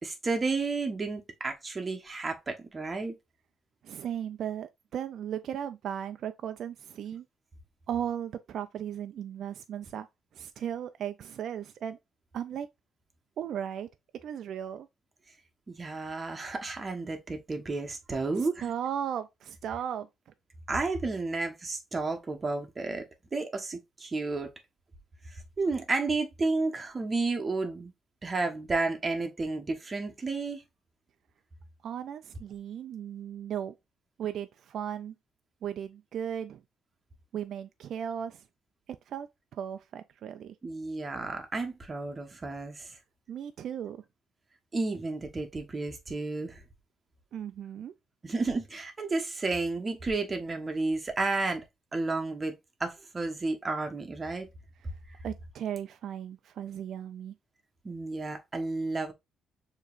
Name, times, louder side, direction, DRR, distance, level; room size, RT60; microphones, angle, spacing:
voice 1, 0.0-3.1 15.7-18.6 20.7-23.0 23.3-24.5 25.6-27.9 28.2-30.6 40.6-43.0 44.7-46.6 48.2-51.6 51.9-52.5 52.8-54.5 57.8-59.1, right 3 dB, 30° right, 1.1 m, -32 dB
voice 2, 3.8-7.3 7.9-10.1 10.3-12.0 12.3-12.7 13.4-13.9 14.2-14.9 18.4-20.1 31.8-33.7 34.2-35.1 35.6-36.6 37.3-38.4 39.1-40.6 43.3-44.0 47.3-47.9 55.2-57.3, right 9 dB, 70° right, 0.3 m, -36 dB
6.5 x 3.0 x 2.4 m
cardioid pair, 90°, 0 cm